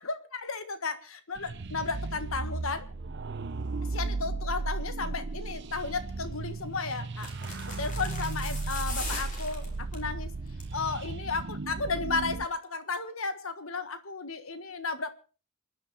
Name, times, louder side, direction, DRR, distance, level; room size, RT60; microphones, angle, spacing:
voice 1, 0.0-2.9 3.9-7.3 7.8-10.4 10.7-15.1, left 4 dB, 70° left, 11 dB, 1.6 m, -34 dB
sound 1, 1.4-12.5, right 3 dB, 55° right, 0.7 m, -35 dB
sound 2, 6.1-6.4 7.2-10.1 10.5-10.8 11.1-11.2, left 3 dB, 35° left, 4.8 m, -40 dB
28.0 x 10.0 x 4.2 m, 0.36 s
head